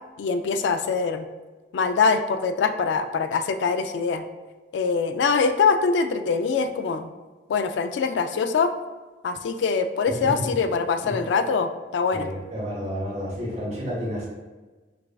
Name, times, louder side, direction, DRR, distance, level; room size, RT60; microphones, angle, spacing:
voice 1, 0.2-1.3 1.7-4.2 4.7-7.1 7.5-8.7 9.2-12.3, left 5 dB, 80° left, 9 dB, 0.3 m, -23 dB
voice 2, 10.1-10.4 11.0-11.2 12.1-14.3, equal, 40° right, -6 dB, 1.3 m, -31 dB
6.4 x 2.4 x 2.3 m, 1.3 s
head